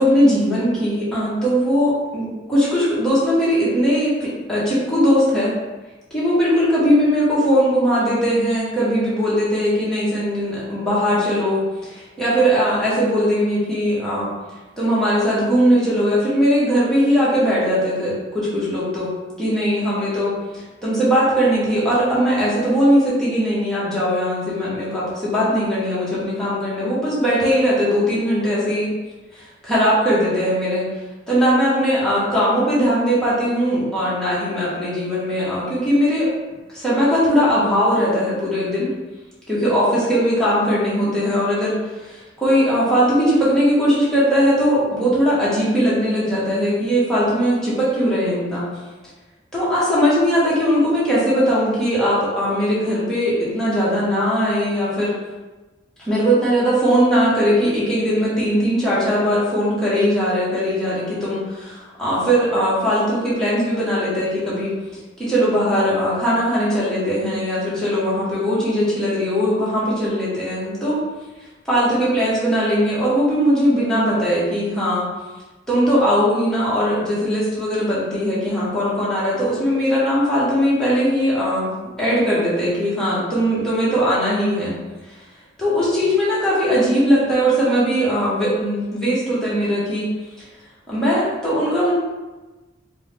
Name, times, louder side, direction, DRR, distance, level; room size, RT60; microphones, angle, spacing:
voice 1, 0.0-5.5 6.1-14.3 14.8-19.1 19.4-28.9 29.3-30.8 31.3-36.3 36.7-38.9 39.5-48.7 49.5-55.1 56.0-64.7 65.2-71.0 71.7-75.1 75.7-81.7 82.0-84.7 85.6-90.1 90.9-91.9, equal, 5° left, -10 dB, 1.1 m, -19 dB
4.4 x 2.2 x 3.3 m, 1.2 s
head